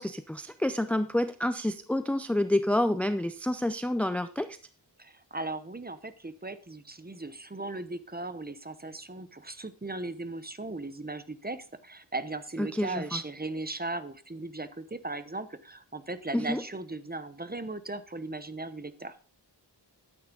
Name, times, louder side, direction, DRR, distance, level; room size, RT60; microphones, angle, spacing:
voice 1, 0.0-4.6 12.6-13.2 16.3-16.6, left 1 dB, 5° left, 10 dB, 0.5 m, -28 dB
voice 2, 5.0-19.2, right 2 dB, 20° right, 12 dB, 0.9 m, -37 dB
12.0 x 8.7 x 3.8 m, 0.40 s
wide cardioid pair, 70°, 43 cm